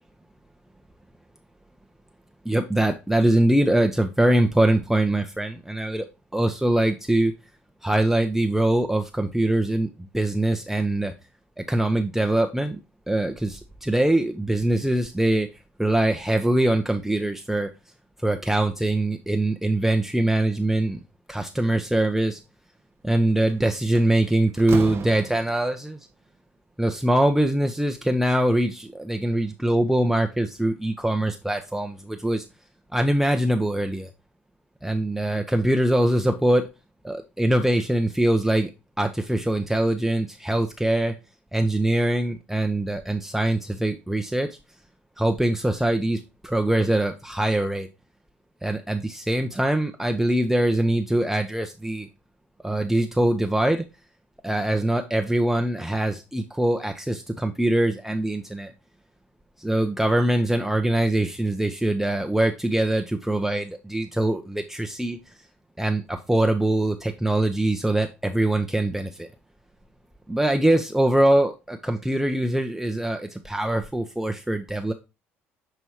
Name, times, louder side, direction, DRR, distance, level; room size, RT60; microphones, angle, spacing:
voice 1, 2.4-6.1 6.3-7.3 7.8-9.9 10.1-11.1 11.6-12.8 13.1-15.5 15.8-17.7 18.2-21.0 21.3-22.4 23.0-26.0 26.8-32.4 32.9-34.1 34.8-36.7 37.0-38.7 39.0-41.1 41.5-44.5 45.2-47.9 48.6-52.1 52.6-53.8 54.4-58.7 59.6-65.2 65.8-69.3 70.3-74.9, right 1 dB, 5° right, 4 dB, 0.7 m, -23 dB
Slam, 23.3-23.5 23.9-25.8, right 7 dB, 40° right, 0.7 m, -35 dB
6.9 x 3.0 x 4.7 m, 0.27 s
hypercardioid pair, 60°, 6 cm